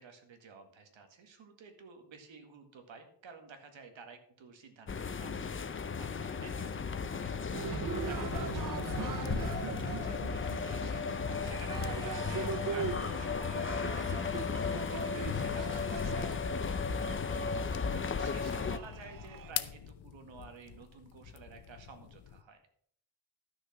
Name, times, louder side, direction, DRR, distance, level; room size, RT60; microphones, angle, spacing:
voice 1, 0.0-7.4 7.7-11.1 11.4-14.5 14.9-17.3 17.9-22.6, right 5 dB, 90° right, 6 dB, 2.0 m, -52 dB
sound 1, 4.9-18.8, left 5 dB, 30° left, 0.6 m, -35 dB
sound 2, 6.5-22.4, left 10 dB, 80° left, 0.8 m, -48 dB
Cheering, 7.5-19.5, right 7 dB, 45° right, 0.7 m, -41 dB
12.0 x 6.5 x 6.0 m, 0.64 s
wide cardioid pair, 145°, 45 cm